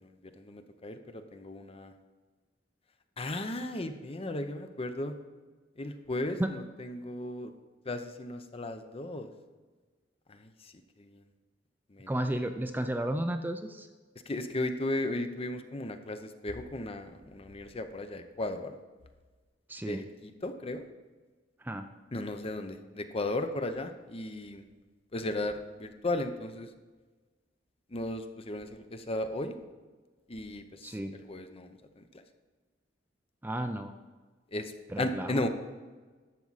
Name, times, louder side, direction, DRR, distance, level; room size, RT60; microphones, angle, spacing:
voice 1, 0.0-1.9 3.2-5.2 5.8-7.5 7.9-9.3 10.3-10.7 11.0-11.2 11.9-12.1 14.3-18.8 19.8-20.8 22.1-24.6 25.1-26.7 27.9-29.6 30.3-32.2 34.5-35.5, left 1 dB, 30° left, 8 dB, 0.7 m, -36 dB
voice 2, 12.1-13.9 19.7-20.0 21.6-21.9 30.8-31.1 33.4-33.9 34.9-35.4, right 1 dB, 10° right, 7 dB, 0.4 m, -32 dB
12.0 x 7.3 x 4.1 m, 1.3 s
head